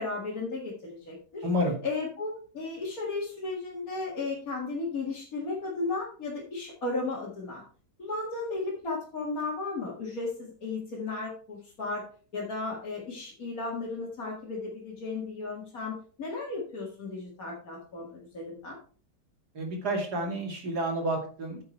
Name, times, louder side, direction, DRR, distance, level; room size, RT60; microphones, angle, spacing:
voice 1, 0.0-1.5 1.8-7.6 8.0-12.0 12.3-18.8, left 3 dB, 55° left, -4 dB, 2.4 m, -35 dB
voice 2, 1.4-1.7 19.5-21.6, equal, 60° right, 2 dB, 3.0 m, -29 dB
9.5 x 6.7 x 4.4 m, 0.41 s
omnidirectional pair, 1.9 m